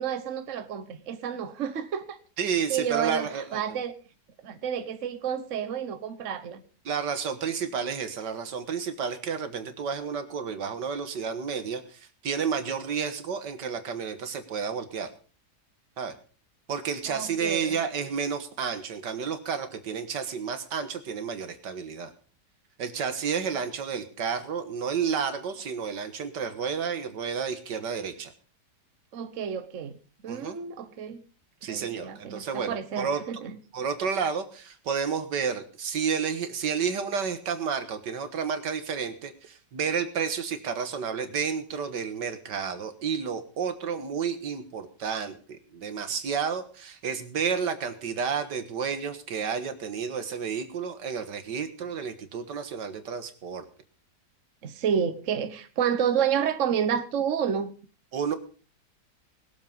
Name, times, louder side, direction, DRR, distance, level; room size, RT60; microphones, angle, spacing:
voice 1, 0.0-2.2 2.7-3.9 4.4-6.6 17.1-17.8 29.1-29.9 30.2-31.2 31.7-33.6 54.6-57.7, right 8 dB, 50° right, 1.3 m, -30 dB
voice 2, 2.4-3.8 6.9-15.1 16.0-16.1 16.7-22.1 22.8-28.3 30.3-30.6 31.6-33.2 33.7-53.7 58.1-58.4, right 6 dB, 85° right, 2.0 m, -31 dB
20.0 x 7.5 x 5.3 m
omnidirectional pair, 1.8 m